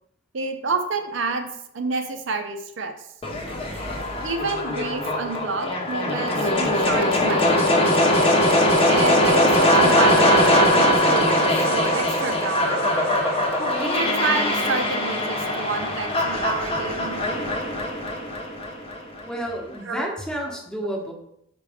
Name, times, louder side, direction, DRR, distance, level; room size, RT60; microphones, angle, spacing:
voice 1, 0.3-1.5 1.7-3.1 4.2-7.7 8.8-12.9 13.8-17.2 19.8-20.1 20.4-20.5, right 3 dB, 65° right, 5 dB, 0.6 m, -29 dB
sound 1, 3.2-19.2, left 1 dB, 25° left, 0.9 m, -21 dB
voice 2, 19.2-21.1, right 1 dB, 5° left, -1 dB, 1.0 m, -30 dB
5.8 x 4.8 x 3.5 m, 0.75 s
head